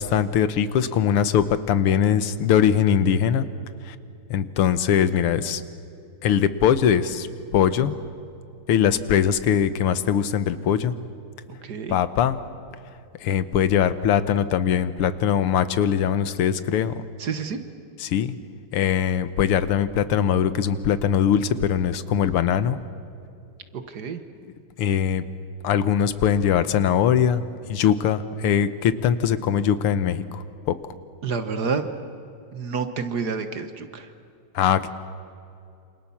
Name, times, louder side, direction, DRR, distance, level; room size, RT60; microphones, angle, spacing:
voice 1, 0.0-3.5 3.9-4.0 4.3-5.6 6.2-7.3 7.5-7.9 8.7-10.9 11.9-12.4 13.2-17.0 18.0-18.4 18.7-22.8 24.8-25.2 25.6-27.4 27.7-30.8 34.6-34.9, left 8 dB, 85° left, 13 dB, 1.9 m, -21 dB
voice 2, 11.6-11.9 17.2-17.6 23.7-24.2 31.2-31.9 32.5-34.1, right 5 dB, 50° right, 9 dB, 1.6 m, -29 dB
27.5 x 26.5 x 7.2 m, 2.5 s
omnidirectional pair, 2.4 m